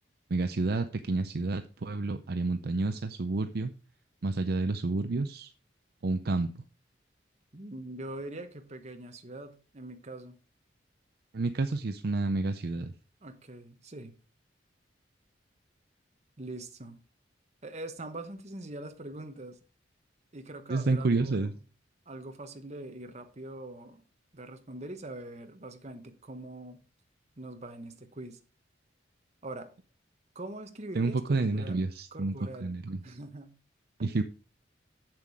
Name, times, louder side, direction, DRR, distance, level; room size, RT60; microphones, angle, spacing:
voice 1, 0.3-3.7 4.2-5.5 6.0-6.5 11.3-12.9 20.7-21.5 30.9-32.3 32.6-33.0 34.0-34.2, right 3 dB, 55° right, 0.5 m, -29 dB
voice 2, 7.5-10.4 13.2-14.1 16.4-17.0 17.6-19.6 20.3-21.6 22.1-24.0 24.3-26.8 27.4-28.4 29.4-29.7 30.3-31.8 32.1-32.7 33.0-33.6 34.0-34.1, right 2 dB, 35° right, 1.1 m, -43 dB
7.5 x 7.5 x 4.8 m
head